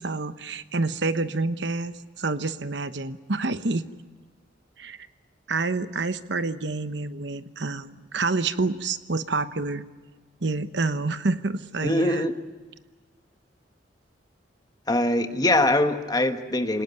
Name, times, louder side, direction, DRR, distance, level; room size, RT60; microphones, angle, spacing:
voice 1, 0.0-3.8 4.8-5.0 5.5-9.8 10.4-12.3, right 3 dB, 65° right, 11 dB, 1.0 m, -28 dB
voice 2, 11.8-12.3 14.9-16.8, left 1 dB, 20° left, 7 dB, 1.4 m, -22 dB
28.0 x 18.5 x 9.5 m, 1.3 s
head